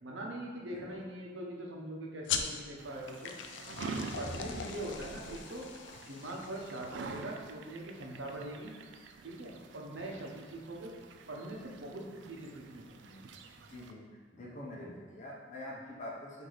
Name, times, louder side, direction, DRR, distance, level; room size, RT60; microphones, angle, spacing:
voice 1, 0.0-3.3 3.9-5.6 6.0-8.7 9.2-10.9 11.3-13.3, right 1 dB, 90° right, -1 dB, 0.8 m, -42 dB
voice 2, 0.7-1.1 4.1-4.7 13.7-14.0 14.3-16.5, left 1 dB, 40° left, -3 dB, 0.7 m, -45 dB
sound 1, 2.2-7.3, left 7 dB, 75° left, 0.4 m, -40 dB
sound 2, 2.8-13.9, right 4 dB, 70° right, 0.3 m, -47 dB
sound 3, 3.6-5.5, equal, 10° left, 1.3 m, -49 dB
4.7 x 2.7 x 4.0 m, 1.5 s
head